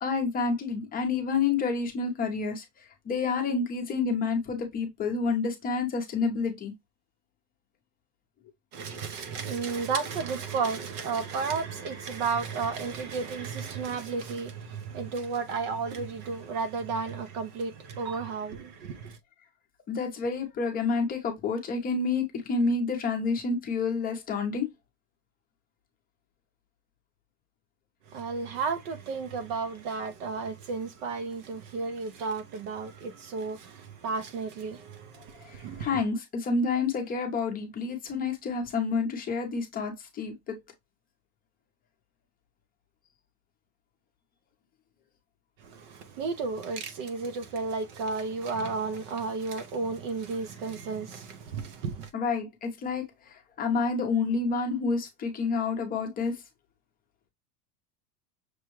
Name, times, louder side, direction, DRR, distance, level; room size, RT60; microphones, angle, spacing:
voice 1, 0.0-2.6 3.1-6.7 19.9-24.7 35.4-40.6 52.1-56.4, left 4 dB, 20° left, 0.7 m, -29 dB
voice 2, 8.7-19.2 28.1-36.0 45.6-52.1, right 4 dB, 50° right, 0.6 m, -33 dB
6.1 x 2.2 x 3.0 m
supercardioid pair, 150°, 46 cm